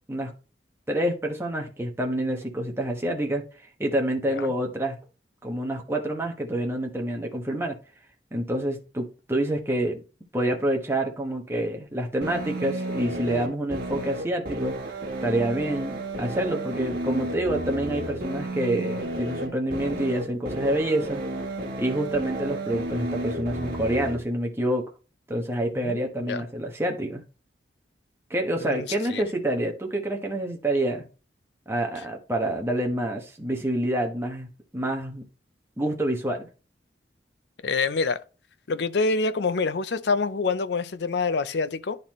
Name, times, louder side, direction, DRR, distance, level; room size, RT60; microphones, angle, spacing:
voice 1, 0.9-5.0 5.4-7.8 8.3-10.0 10.3-14.8 15.2-21.2 21.8-24.8 25.3-27.2 28.3-31.0 31.7-34.5 34.7-35.3 35.8-36.5, right 1 dB, 15° right, 1.1 m, -27 dB
sound 1, 12.2-24.2, right 1 dB, 55° right, 1.7 m, -32 dB
voice 2, 25.7-26.4 28.6-28.8 29.1-29.2 37.6-38.2 38.7-42.0, left 4 dB, 70° left, 0.5 m, -26 dB
10.5 x 4.0 x 3.1 m
head